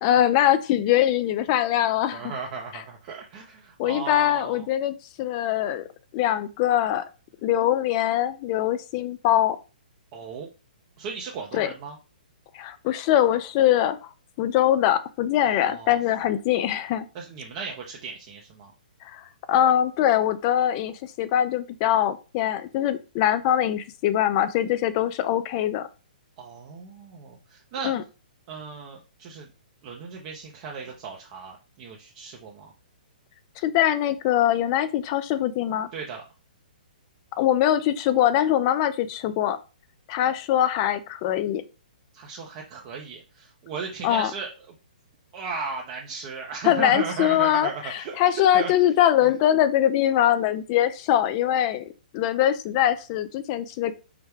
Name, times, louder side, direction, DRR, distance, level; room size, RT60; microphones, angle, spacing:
voice 1, 0.0-2.3 2.7-2.8 3.8-5.8 6.1-7.0 7.4-9.6 11.5-11.7 12.5-14.0 14.4-17.1 19.1-19.2 19.5-25.9 27.8-28.0 33.6-35.9 37.4-39.6 40.1-41.6 44.0-44.3 46.6-51.8 52.1-54.0, left 11 dB, 35° left, 13 dB, 0.4 m, -22 dB
voice 2, 2.1-4.7 10.1-10.5 11.0-12.0 15.4-16.0 17.1-18.7 26.4-27.9 28.5-29.5 29.8-32.7 35.9-36.2 42.1-44.5 45.3-48.7 49.2-49.3, right 5 dB, 40° right, -1 dB, 0.7 m, -36 dB
4.7 x 2.1 x 3.5 m, 0.33 s
hypercardioid pair, 135°, 5 cm